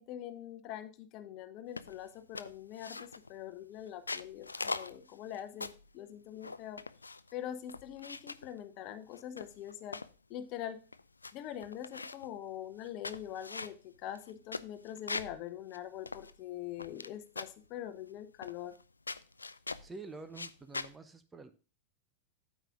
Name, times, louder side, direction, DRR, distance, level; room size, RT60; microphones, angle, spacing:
voice 1, 0.0-6.8 7.3-10.0 10.3-10.8 11.3-18.7, left 11 dB, 40° left, 10 dB, 0.9 m, -43 dB
sound 1, 1.8-2.0 2.3-3.3 3.9-5.9 6.4-7.3 7.7-8.5 9.1-10.1 10.6-10.7 10.9-11.3 11.6-12.3 12.8-15.4 15.7-15.8 16.1-17.1 17.3-17.6 18.4-18.8 19.1-19.9 20.3-20.9, left 3 dB, 80° left, 0.4 m, -42 dB
voice 2, 19.8-21.5, right 3 dB, 15° right, 11 dB, 0.7 m, -48 dB
9.0 x 8.4 x 2.5 m, 0.34 s
figure-of-eight pair, 90°, 0 cm